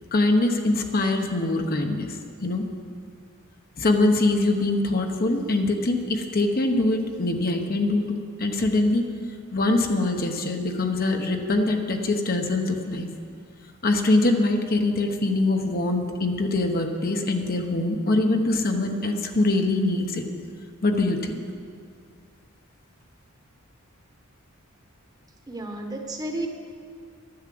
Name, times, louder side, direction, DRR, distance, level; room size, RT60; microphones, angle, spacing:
voice 1, 0.1-2.1 2.4-2.6 3.8-9.0 9.5-13.1 13.8-20.2 20.8-21.4, left 2 dB, 45° left, 4 dB, 1.0 m, -23 dB
voice 2, 25.5-26.5, right 1 dB, 20° right, 3 dB, 1.2 m, -32 dB
11.0 x 9.8 x 7.7 m, 2.2 s
head